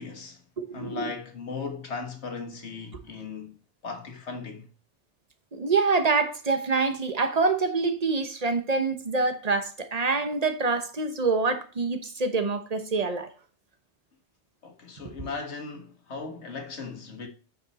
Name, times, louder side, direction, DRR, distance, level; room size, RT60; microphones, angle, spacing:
voice 1, 0.0-0.4 0.7-3.6 3.8-4.7 14.6-17.3, left 4 dB, 75° left, 1.7 m, -37 dB
voice 2, 0.6-1.1 5.5-13.3 15.2-15.3, right 4 dB, 35° right, 1.1 m, -26 dB
8.5 x 5.5 x 4.2 m
omnidirectional pair, 1.2 m